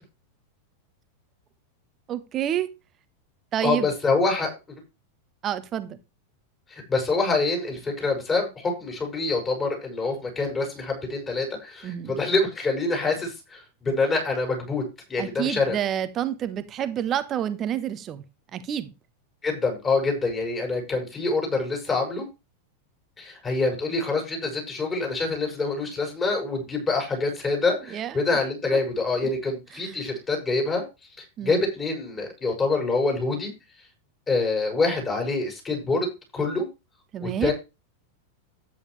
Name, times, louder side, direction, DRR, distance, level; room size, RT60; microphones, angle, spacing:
voice 1, 2.1-2.7 3.5-3.9 5.4-6.0 11.8-12.2 15.2-18.2 18.5-18.9 27.9-28.2 28.7-28.8 29.7-30.0 31.4-31.6 37.1-37.5, right 10 dB, 30° right, 1.2 m, -28 dB
voice 2, 3.6-4.8 6.7-14.8 15.1-15.8 19.4-22.2 23.2-30.8 31.2-33.5 34.3-36.7 37.2-37.5, left 3 dB, 20° left, 6.6 m, -26 dB
11.0 x 9.4 x 3.3 m
figure-of-eight pair, 90°, 0 cm